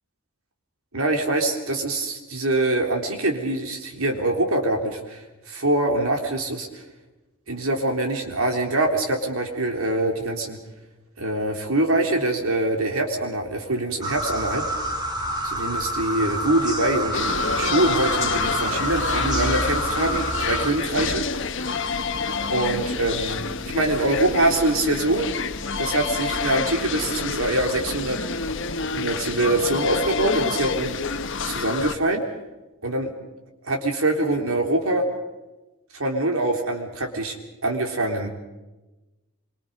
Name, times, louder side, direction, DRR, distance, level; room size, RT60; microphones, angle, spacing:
voice 1, 0.9-6.8 7.5-10.6 11.2-14.6 15.4-21.3 22.5-25.3 25.8-28.2 28.9-31.0 31.4-32.2 32.8-33.1 33.7-35.0 35.9-37.4 37.6-38.3, right 2 dB, 75° right, 3 dB, 3.5 m, -24 dB
sound 1, 14.0-20.7, right 1 dB, 20° right, 3.3 m, -27 dB
sound 2, 17.1-31.9, left 5 dB, 60° left, 1.2 m, -28 dB
26.0 x 24.5 x 5.3 m, 1.1 s
head